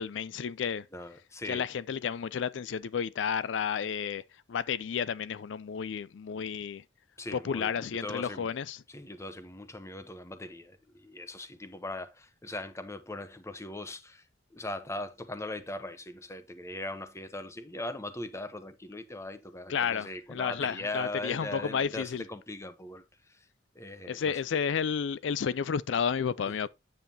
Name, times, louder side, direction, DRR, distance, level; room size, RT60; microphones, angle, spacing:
voice 1, 0.0-0.9 1.5-4.2 4.5-6.8 7.3-8.8 19.7-22.2 24.1-26.7, left 7 dB, 70° left, 0.4 m, -31 dB
voice 2, 0.9-1.7 7.2-8.5 8.9-23.5 23.7-24.4 26.5-26.7, left 2 dB, 15° left, 0.9 m, -40 dB
9.1 x 7.3 x 2.8 m
head